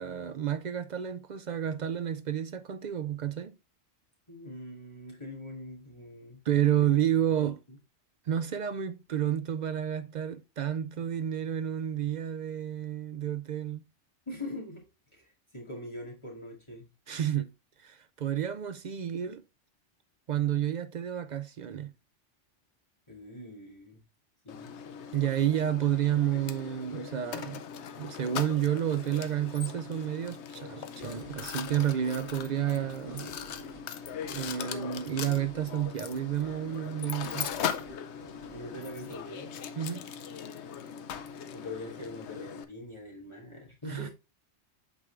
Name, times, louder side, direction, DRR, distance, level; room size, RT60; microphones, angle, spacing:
voice 1, 0.0-3.6 6.5-7.6 8.3-13.8 17.1-17.5 17.8-19.4 20.3-21.9 25.1-27.6 28.0-33.3 34.3-37.5 39.8-40.1 43.9-44.1, right 10 dB, 60° right, 0.4 m, -30 dB
voice 2, 4.3-6.4 6.8-6.9 7.7-7.8 14.3-14.8 15.1-15.2 15.5-16.9 23.1-24.0 24.4-24.7 38.5-39.6 41.5-44.1, left 1 dB, 25° left, 1.5 m, -42 dB
Mechanisms, 24.5-42.6, left 8 dB, 70° left, 0.9 m, -40 dB
sound 1, 31.0-39.2, right 2 dB, 45° right, 2.3 m, -49 dB
8.2 x 3.7 x 3.3 m
omnidirectional pair, 1.2 m